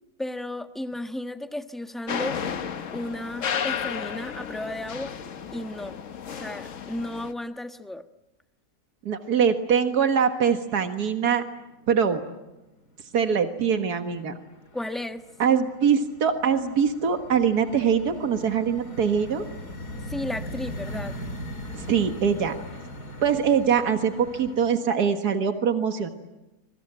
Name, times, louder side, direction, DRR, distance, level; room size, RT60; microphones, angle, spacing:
voice 1, 0.2-2.4 2.9-5.1 5.5-6.0 6.3-8.1 14.7-15.2 20.1-21.2, left 1 dB, ahead, 7 dB, 1.0 m, -34 dB
sound 1, 2.1-7.3, left 7 dB, 55° left, 1.4 m, -33 dB
voice 2, 9.1-11.4 11.9-12.2 13.1-14.3 15.4-19.4 21.7-22.5 23.2-26.1, right 7 dB, 80° right, 6 dB, 2.1 m, -23 dB
sound 2, 11.6-12.2 12.5-13.2 13.6-24.7, equal, 85° left, 3.7 m, -40 dB
27.0 x 23.0 x 8.9 m, 1.0 s
omnidirectional pair, 1.6 m